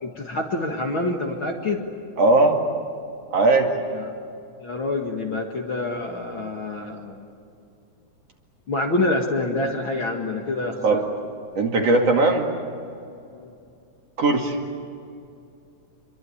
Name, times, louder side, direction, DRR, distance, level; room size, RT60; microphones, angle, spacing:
voice 1, 0.0-1.8 4.0-4.1 4.6-7.3 8.7-11.0 13.3-13.5, left 2 dB, 40° left, 1 dB, 2.2 m, -27 dB
voice 2, 2.2-2.6 3.3-3.7 10.8-11.0 11.6-12.5 14.2-14.6, right 3 dB, 50° right, 1 dB, 3.2 m, -18 dB
27.0 x 24.0 x 8.7 m, 2.5 s
omnidirectional pair, 4.0 m